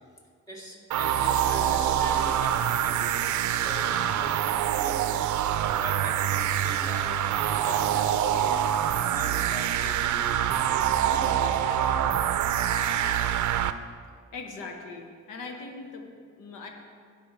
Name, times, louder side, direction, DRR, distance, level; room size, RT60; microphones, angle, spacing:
voice 1, 0.5-12.0, equal, 10° left, -2 dB, 2.1 m, -42 dB
sound 1, 0.9-13.7, right 10 dB, 75° right, 0.5 m, -25 dB
voice 2, 14.3-16.1 16.4-16.7, left 4 dB, 90° left, 2 dB, 1.2 m, -40 dB
16.0 x 5.4 x 3.2 m, 2.1 s
cardioid pair, 90°, 30 cm